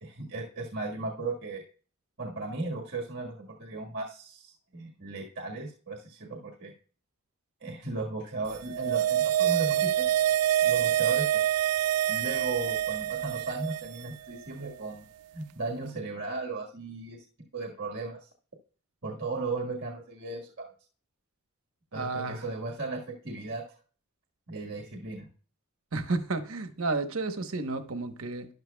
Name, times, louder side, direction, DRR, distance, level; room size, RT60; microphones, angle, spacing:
voice 1, 0.0-1.6 2.2-6.7 7.6-10.1 10.6-11.5 12.1-15.0 15.3-17.2 17.5-18.3 19.0-20.7 21.9-23.6 24.5-25.3, right 3 dB, 50° right, 1.6 m, -36 dB
sound 1, 8.6-14.0 14.3-14.4, right 12 dB, 90° right, 0.3 m, -26 dB
voice 2, 21.9-22.4 25.9-28.5, right 3 dB, 70° right, 1.0 m, -32 dB
12.0 x 11.0 x 2.3 m
head